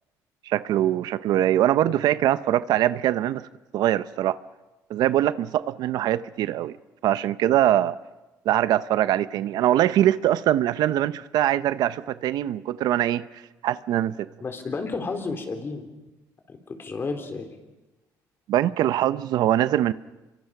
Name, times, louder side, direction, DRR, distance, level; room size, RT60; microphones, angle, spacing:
voice 1, 0.5-3.5 3.7-4.4 4.9-6.7 7.0-7.9 8.4-13.2 13.6-14.3 18.5-19.9, right 12 dB, 75° right, 0.8 m, -22 dB
voice 2, 14.4-15.9 16.5-17.5, left 4 dB, 35° left, 4.0 m, -31 dB
28.0 x 24.0 x 6.0 m
cardioid pair, 110°, 7 cm